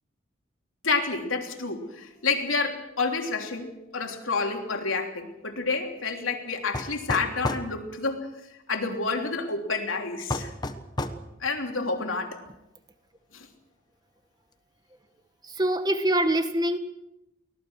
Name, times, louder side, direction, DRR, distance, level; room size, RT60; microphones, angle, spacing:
voice 1, 0.8-8.3 8.7-10.5 11.4-12.4 13.3-13.5, left 4 dB, 85° left, 3 dB, 3.3 m, -29 dB
sound 1, 6.7-7.7 10.3-11.2, left 1 dB, 20° left, 1.2 m, -30 dB
voice 2, 15.5-16.8, right 1 dB, 20° right, 9 dB, 1.5 m, -24 dB
24.0 x 18.0 x 6.4 m, 0.89 s
head